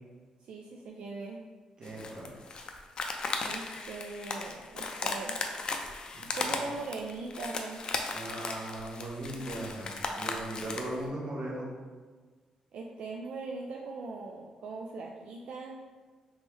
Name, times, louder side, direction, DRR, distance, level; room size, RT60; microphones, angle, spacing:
voice 1, 0.4-1.4 3.4-5.4 6.2-7.9 12.7-15.8, right 3 dB, 70° right, -1 dB, 0.3 m, -40 dB
sound 1, 1.8-11.0, left 3 dB, 45° left, 0.4 m, -36 dB
voice 2, 1.8-2.3 6.1-6.7 8.1-11.7, right 1 dB, 45° right, -3 dB, 1.0 m, -38 dB
3.4 x 3.0 x 3.4 m, 1.5 s
cardioid pair, 120°, 2 cm